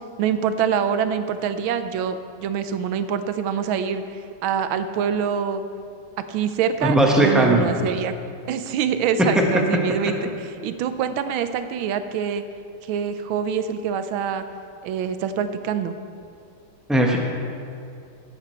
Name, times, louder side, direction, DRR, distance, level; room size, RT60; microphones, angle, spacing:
voice 1, 0.2-5.6 6.3-8.1 8.5-10.1 10.6-12.4 12.8-14.4 14.8-16.0, right 7 dB, 80° right, 10 dB, 1.5 m, -25 dB
voice 2, 6.8-7.6 9.9-10.0 16.9-17.2, right 1 dB, ahead, -1 dB, 0.5 m, -17 dB
16.0 x 7.3 x 4.4 m, 2.4 s
omnidirectional pair, 2.2 m